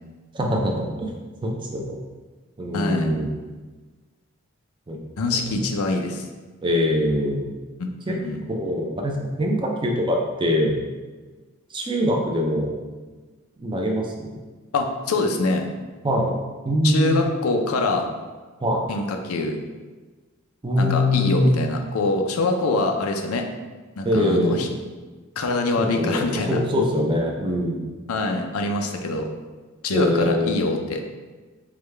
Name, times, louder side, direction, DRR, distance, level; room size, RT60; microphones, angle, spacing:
voice 1, 0.3-1.1 1.4-2.0 2.6-3.3 4.9-5.0 5.3-5.6 6.6-7.5 8.1-8.2 8.5-10.8 11.7-12.7 13.6-14.3 16.0-16.4 16.6-17.2 18.6-18.9 20.6-21.6 24.0-24.6 25.8-27.8 29.9-30.6, equal, 25° right, 0 dB, 0.5 m, -23 dB
voice 2, 2.7-3.1 5.2-6.2 7.8-8.4 14.7-15.7 16.8-18.1 18.9-19.6 20.8-23.4 24.0-24.7 25.4-26.6 28.1-29.3 29.8-31.1, left 2 dB, 85° left, 4 dB, 0.5 m, -24 dB
4.8 x 2.2 x 3.3 m, 1.3 s
head